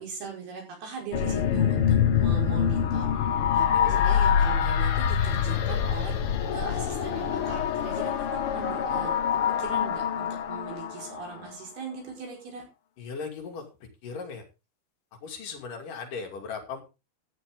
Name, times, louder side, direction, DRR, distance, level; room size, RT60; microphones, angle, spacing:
voice 1, 0.0-3.1 3.5-6.2 6.5-12.7, right 6 dB, 75° right, 1 dB, 7.0 m, -40 dB
sound 1, 1.1-11.5, left 8 dB, 80° left, 1.2 m, -25 dB
voice 2, 13.0-13.7 14.0-14.4 15.1-16.8, left 5 dB, 60° left, 3 dB, 4.0 m, -37 dB
15.0 x 10.0 x 3.7 m, 0.28 s
omnidirectional pair, 4.5 m